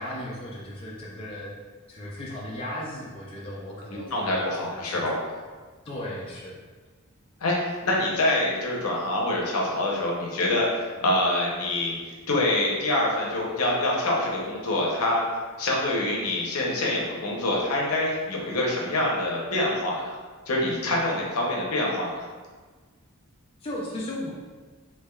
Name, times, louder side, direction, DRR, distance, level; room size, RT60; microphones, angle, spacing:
voice 1, 0.0-1.5 1.9-5.4 5.8-6.6 23.6-24.3, left 1 dB, 25° left, -5 dB, 0.4 m, -36 dB
voice 2, 4.1-5.2 7.4-12.0 12.3-15.3 15.6-20.2 20.5-22.2, left 1 dB, 75° left, -2 dB, 0.7 m, -25 dB
3.3 x 3.1 x 2.3 m, 1.4 s
head